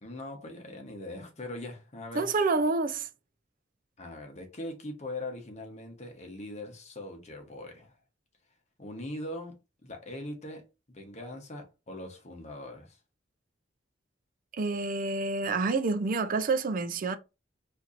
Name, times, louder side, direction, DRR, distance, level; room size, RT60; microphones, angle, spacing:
voice 1, 0.0-2.3 4.0-8.0 8.8-13.0, left 1 dB, 40° left, 1.0 m, -41 dB
voice 2, 2.1-3.1 14.6-17.2, right 3 dB, 50° right, 0.5 m, -28 dB
4.4 x 2.6 x 2.5 m
head